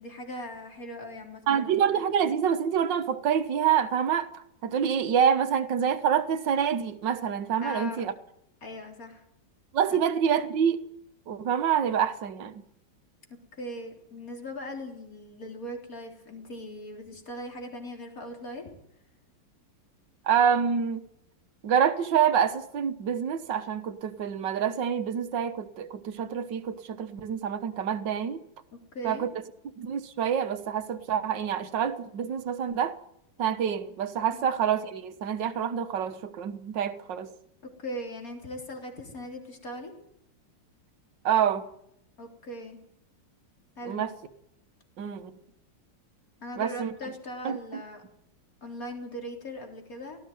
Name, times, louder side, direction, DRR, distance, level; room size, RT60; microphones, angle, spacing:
voice 1, 0.0-1.7 7.6-8.0 8.6-9.2 9.9-10.0 13.3-18.7 28.7-29.3 34.4-34.5 37.8-39.9 42.2-42.8 43.8-44.1 46.4-48.0 48.6-50.2, equal, 45° left, 4.1 m, -39 dB
voice 2, 1.5-8.1 9.7-10.8 11.3-12.6 20.3-21.0 21.6-28.4 29.0-29.3 29.8-33.0 33.4-37.3 41.2-41.7 43.9-44.1 45.0-45.3 46.6-46.9 47.4-47.8, right 8 dB, 70° right, 1.9 m, -27 dB
18.5 x 15.0 x 9.3 m
omnidirectional pair, 2.0 m